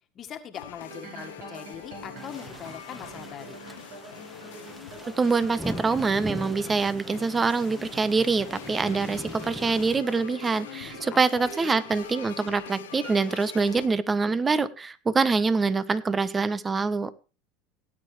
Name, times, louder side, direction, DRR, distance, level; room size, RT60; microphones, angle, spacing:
voice 1, 0.2-3.6 10.7-11.7, left 8 dB, 40° left, 6 dB, 1.8 m, -42 dB
sound 1, 0.5-13.9, left 9 dB, 80° left, 1.0 m, -44 dB
sound 2, 0.8-13.1, right 4 dB, 70° right, 6.0 m, -46 dB
sound 3, 2.2-10.0, equal, ahead, 1.5 m, -41 dB
voice 2, 5.2-17.1, right 4 dB, 20° right, 15 dB, 1.1 m, -25 dB
18.0 x 9.4 x 3.3 m, 0.32 s
hypercardioid pair, 85°, 0 cm